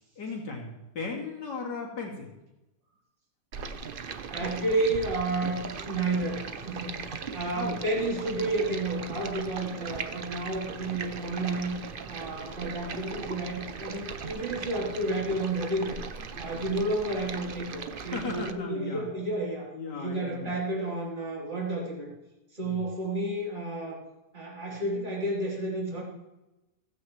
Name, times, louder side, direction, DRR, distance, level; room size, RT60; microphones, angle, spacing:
voice 1, 0.2-2.3 7.5-7.8 18.1-19.1 19.7-20.5 22.6-22.9, left 4 dB, 80° left, -2 dB, 3.0 m, -36 dB
Stream, 3.5-18.5, right 5 dB, 50° right, 0.7 m, -39 dB
voice 2, 4.3-11.7 12.1-16.0 16.4-19.7 19.9-22.1 22.5-24.0 24.3-26.0, right 2 dB, 30° right, -5 dB, 3.8 m, -31 dB
16.0 x 15.5 x 3.2 m, 0.99 s
omnidirectional pair, 1.8 m